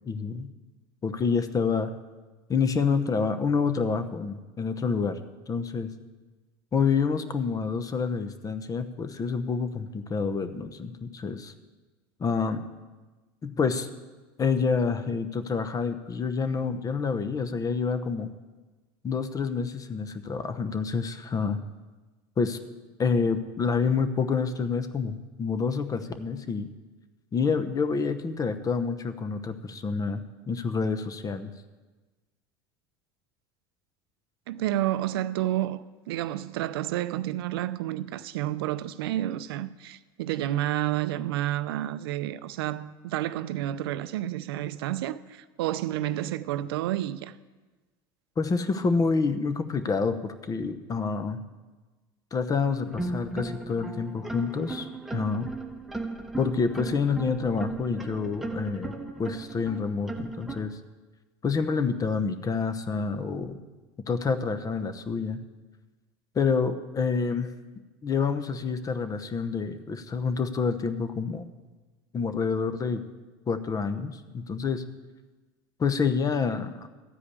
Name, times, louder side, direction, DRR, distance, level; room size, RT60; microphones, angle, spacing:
voice 1, 0.1-0.5 1.0-1.9 2.5-5.2 5.5-5.9 6.7-11.5 12.2-12.7 13.4-13.9 14.4-18.3 19.0-21.6 22.4-22.6 23.0-26.7 27.3-31.5 48.4-51.4 52.3-55.5 56.4-58.9 59.2-60.8 61.4-63.6 64.1-65.4 66.3-67.5 68.0-71.5 72.1-73.0 73.5-74.8 75.8-76.9, left 5 dB, 30° left, 0.9 m, -28 dB
voice 2, 34.5-47.3, right 13 dB, 85° right, 0.5 m, -30 dB
sound 1, 52.8-60.6, right 3 dB, ahead, 1.1 m, -36 dB
13.0 x 5.0 x 8.5 m
supercardioid pair, 95°, 12 cm